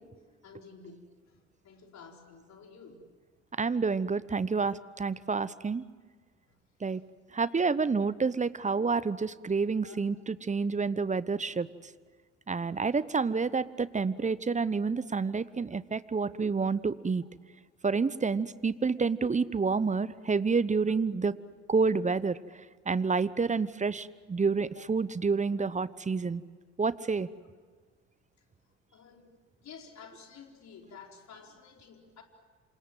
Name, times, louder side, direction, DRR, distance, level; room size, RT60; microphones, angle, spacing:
voice 1, 0.4-3.0 4.1-4.2 5.8-5.9 6.5-6.6 6.9-7.0 9.8-10.4 15.0-15.1 25.6-25.7 28.9-29.3 29.6-32.2, left 5 dB, 50° left, 2 dB, 4.5 m, -51 dB
voice 2, 3.6-5.8 6.8-7.0 7.3-10.1 10.5-11.7 12.5-17.2 17.8-21.3 21.7-22.4 22.9-26.4 26.8-27.3, right 4 dB, 20° right, 18 dB, 1.0 m, -28 dB
28.0 x 26.0 x 7.6 m, 1.5 s
figure-of-eight pair, 50°, 35 cm